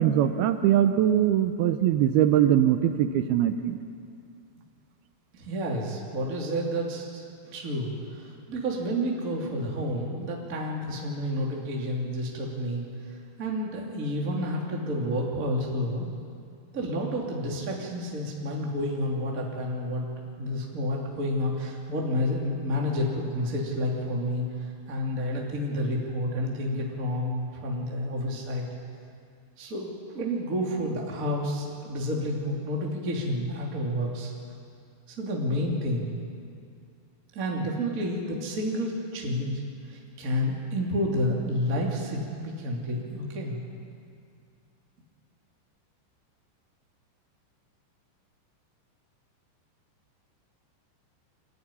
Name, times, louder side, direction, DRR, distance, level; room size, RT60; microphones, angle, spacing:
voice 1, 0.0-3.8, right 10 dB, 80° right, 9 dB, 2.3 m, -22 dB
voice 2, 5.4-12.8 13.1-16.1 16.7-24.4 24.9-28.6 29.6-34.3 35.1-36.2 37.3-39.6 39.9-43.6, equal, 25° right, -2 dB, 2.4 m, -30 dB
25.5 x 14.0 x 9.9 m, 2.3 s
omnidirectional pair, 5.2 m